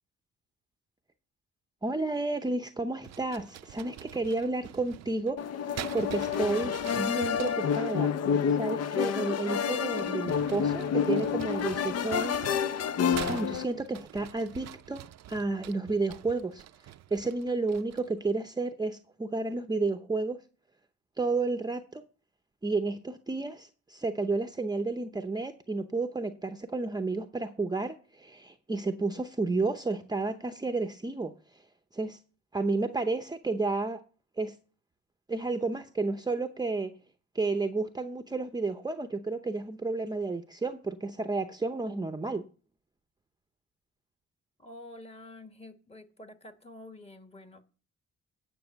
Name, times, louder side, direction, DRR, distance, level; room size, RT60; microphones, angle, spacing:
voice 1, 1.8-5.4 5.6-8.1 8.5-15.0 15.3-16.6 17.1-20.4 21.2-22.0 22.6-31.6 31.9-32.2 32.5-34.0 34.4-34.5 35.3-36.9 37.3-42.4, right 3 dB, 15° right, 0.7 m, -31 dB
sound 1, 3.0-7.9 9.6-18.2, right 13 dB, 60° right, 0.5 m, -45 dB
sound 2, 5.4-13.6, left 7 dB, 55° left, 0.6 m, -29 dB
voice 2, 44.6-47.6, left 1 dB, 20° left, 1.5 m, -48 dB
9.3 x 6.0 x 7.9 m
cardioid pair, 90°, 30 cm